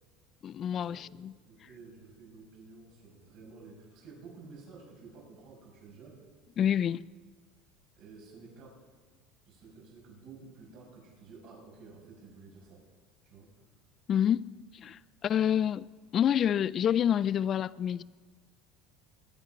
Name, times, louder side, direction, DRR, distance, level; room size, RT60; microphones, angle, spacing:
voice 1, 0.4-1.3 6.6-7.0 14.1-14.6 14.8-15.9 16.1-18.0, left 9 dB, 40° left, 0.4 m, -28 dB
voice 2, 1.5-6.2 8.0-8.8 9.5-12.8 13.2-13.5, right 4 dB, 60° right, 6.2 m, -52 dB
22.0 x 10.0 x 5.2 m
supercardioid pair, 120°, 0 cm